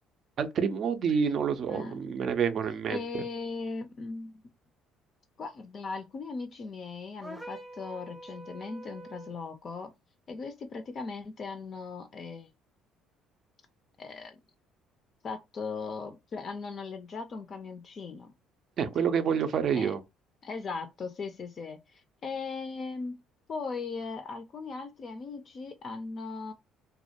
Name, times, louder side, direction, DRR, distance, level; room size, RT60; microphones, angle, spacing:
voice 1, 0.4-3.2 18.8-20.0, right 7 dB, 50° right, 0.4 m, -28 dB
voice 2, 1.7-2.2 2.9-4.4 5.4-9.9 10.3-12.5 14.0-14.4 15.2-18.3 19.0-19.1 19.7-19.9 20.4-23.2 23.5-26.5, left 4 dB, 45° left, 0.3 m, -38 dB
sound 1, 7.2-9.4, right 1 dB, 5° right, 0.7 m, -45 dB
2.2 x 2.0 x 2.7 m
hypercardioid pair, 55°, 0 cm